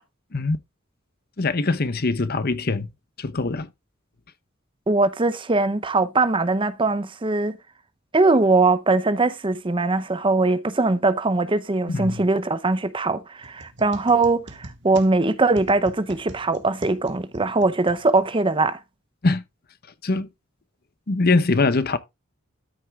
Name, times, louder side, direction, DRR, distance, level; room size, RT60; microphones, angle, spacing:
voice 1, 1.4-2.9 3.2-3.7 11.9-12.2 19.2-19.4 20.0-20.3 21.1-22.0, left 3 dB, 50° left, 0.9 m, -22 dB
voice 2, 4.9-7.6 8.1-18.8, right 3 dB, 25° right, 0.7 m, -21 dB
sound 1, 13.4-18.5, right 1 dB, 60° right, 1.8 m, -43 dB
13.0 x 6.4 x 2.4 m
head